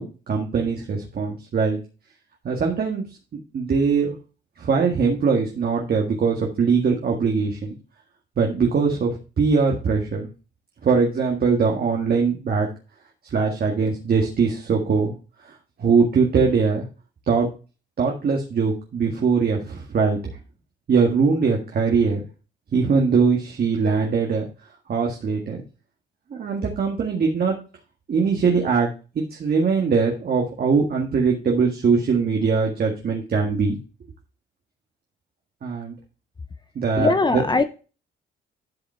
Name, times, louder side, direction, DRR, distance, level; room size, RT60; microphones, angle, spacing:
voice 1, 0.0-1.8 2.4-3.0 3.5-4.1 4.6-7.8 8.4-10.3 10.8-12.7 13.3-15.1 15.4-15.5 15.8-16.8 17.3-17.5 18.0-20.2 20.9-22.2 22.7-24.5 24.9-25.6 26.3-27.6 28.1-28.9 29.1-33.8 35.6-35.9 36.7-37.4, right 5 dB, 50° right, 0 dB, 1.8 m, -21 dB
voice 2, 37.0-37.6, left 3 dB, 20° left, 10 dB, 0.7 m, -20 dB
11.5 x 5.0 x 4.4 m, 0.34 s
cardioid pair, 90°, 20 cm